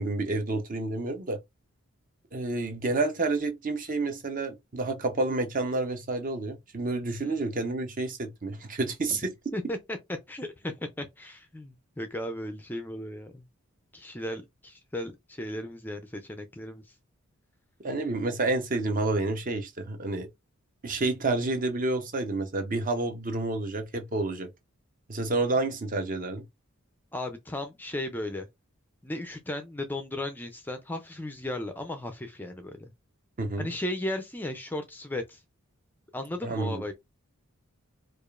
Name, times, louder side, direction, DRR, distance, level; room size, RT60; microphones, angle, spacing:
voice 1, 0.0-1.4 2.3-9.3 17.8-20.3 20.8-24.5 25.1-26.4 33.4-33.7 36.4-36.8, right 2 dB, 35° right, 0.6 m, -29 dB
voice 2, 9.5-13.4 13.9-16.9 27.1-28.5 29.0-32.9 33.6-35.4 36.1-36.9, left 1 dB, 10° left, 0.4 m, -35 dB
4.8 x 2.4 x 2.4 m
head